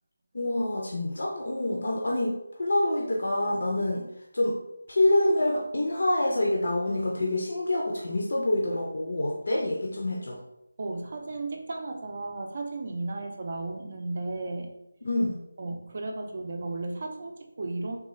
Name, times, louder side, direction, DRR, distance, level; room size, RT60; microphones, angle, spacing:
voice 1, 0.3-4.0 4.3-4.6 4.9-10.4 15.0-15.4, left 1 dB, 55° left, -2 dB, 0.5 m, -26 dB
voice 2, 10.8-14.7 15.6-18.0, right 2 dB, 35° right, 3 dB, 0.4 m, -34 dB
3.5 x 2.3 x 3.1 m, 0.83 s
figure-of-eight pair, 175°, 0 cm